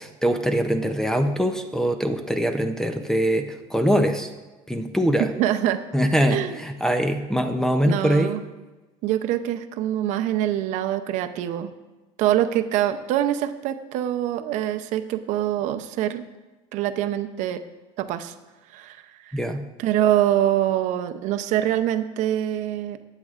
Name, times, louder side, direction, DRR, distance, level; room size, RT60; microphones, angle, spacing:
voice 1, 0.0-4.3 4.7-5.3 5.9-8.3 19.3-19.6, equal, 5° left, 6 dB, 0.4 m, -23 dB
voice 2, 5.4-5.8 6.3-6.6 7.8-8.4 9.0-11.7 12.2-16.2 16.7-17.6 18.0-18.3 18.7-19.0 19.8-23.0, right 12 dB, 55° right, 9 dB, 0.6 m, -24 dB
14.5 x 8.9 x 2.4 m, 1.2 s
cardioid pair, 165°, 15 cm